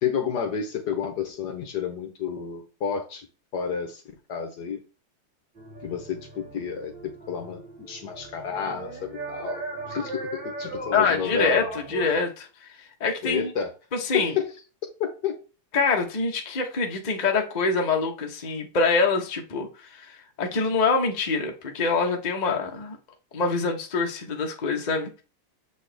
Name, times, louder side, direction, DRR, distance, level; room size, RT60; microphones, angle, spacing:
voice 1, 0.0-3.3 3.5-4.0 4.3-4.8 5.8-7.6 7.9-11.7 13.2-13.7 14.1-14.5 15.0-15.4, left 7 dB, 60° left, 1.3 m, -30 dB
sound 1, 5.6-12.1, right 2 dB, 60° right, 3.9 m, -37 dB
voice 2, 10.9-12.5 13.0-13.5 13.9-14.4 15.7-23.0 23.3-25.2, left 4 dB, 30° left, 0.8 m, -25 dB
6.9 x 4.2 x 3.4 m
omnidirectional pair, 2.3 m